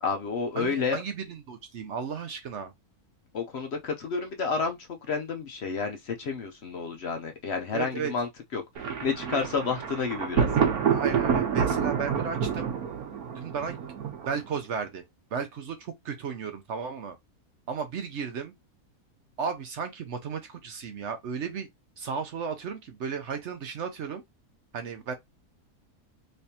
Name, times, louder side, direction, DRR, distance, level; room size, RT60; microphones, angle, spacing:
voice 1, 0.0-1.0 3.3-10.5, left 5 dB, 55° left, 0.8 m, -30 dB
voice 2, 0.6-2.7 7.7-8.1 10.9-12.7 13.4-13.7 14.3-15.0 15.3-17.2 17.7-18.5 19.4-21.7 22.0-24.2 24.7-25.1, right 6 dB, 60° right, 0.9 m, -34 dB
Thunder, 8.8-14.6, right 7 dB, 85° right, 1.4 m, -28 dB
3.4 x 3.2 x 2.8 m
omnidirectional pair, 1.5 m